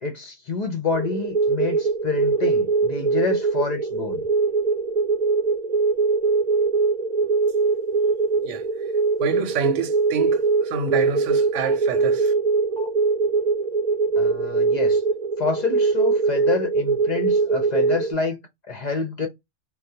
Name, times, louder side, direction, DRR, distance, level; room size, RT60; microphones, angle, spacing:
voice 1, 0.0-4.3 14.2-15.0 15.4-19.3, left 4 dB, 50° left, 0.5 m, -28 dB
sound 1, 0.9-18.1, right 4 dB, 45° right, 0.6 m, -22 dB
voice 2, 9.2-12.3, right 6 dB, 85° right, 0.9 m, -28 dB
2.3 x 2.1 x 2.6 m
omnidirectional pair, 1.2 m